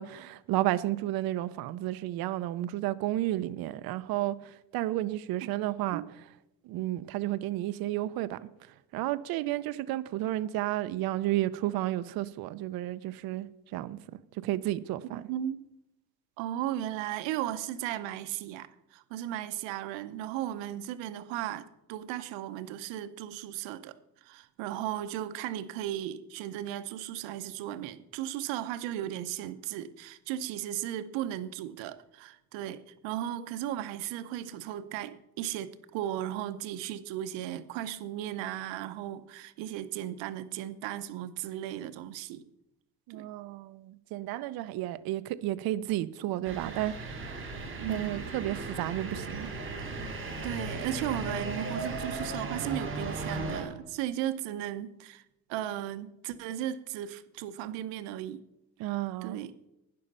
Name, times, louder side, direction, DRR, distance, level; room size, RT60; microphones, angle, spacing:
voice 1, 0.0-6.0 6.6-8.4 8.9-13.5 13.7-14.0 14.4-15.2 43.1-47.3 47.9-49.5 58.8-59.4, right 15 dB, 55° right, 0.6 m, -32 dB
voice 2, 15.1-15.7 16.4-23.9 24.2-42.5 43.1-43.3 47.8-48.3 50.4-55.2 55.5-58.4 59.2-59.5, right 12 dB, 85° right, 0.9 m, -36 dB
sound 1, 46.4-53.6, right 3 dB, 30° right, 2.4 m, -36 dB
12.0 x 10.0 x 5.5 m
cardioid pair, 155°, 43 cm